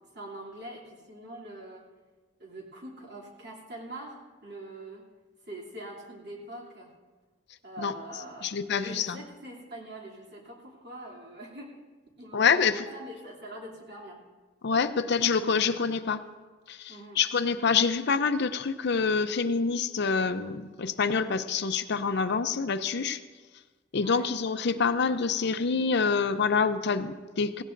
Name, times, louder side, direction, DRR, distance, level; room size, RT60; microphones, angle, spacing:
voice 1, 0.1-1.9 2.4-5.0 5.4-6.9 7.6-11.7 12.2-14.2 16.9-17.2 24.0-24.3, right 1 dB, 60° right, -3 dB, 2.9 m, -43 dB
voice 2, 8.4-9.2 12.3-12.8 14.6-16.2 16.7-23.2 23.9-27.6, left 5 dB, 60° left, 10 dB, 0.6 m, -26 dB
17.5 x 16.5 x 2.6 m, 1.3 s
head